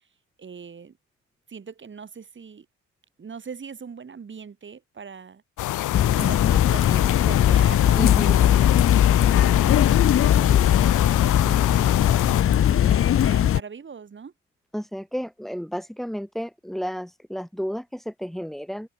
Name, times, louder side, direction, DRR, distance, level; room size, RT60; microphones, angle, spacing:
voice 1, 0.4-1.0 1.5-2.7 3.2-5.4 6.2-8.8 9.3-14.3, right 6 dB, 40° right, 4.9 m, -41 dB
sound 1, 5.6-12.4, left 15 dB, 85° left, 2.3 m, -27 dB
sound 2, 5.9-13.6, left 10 dB, 45° left, 0.6 m, -19 dB
Wind instrument woodwind instrument, 6.9-10.7, left 10 dB, 65° left, 3.2 m, -36 dB
voice 2, 8.0-8.4 14.7-18.9, equal, ahead, 1.8 m, -32 dB
cardioid pair, 90°, 30 cm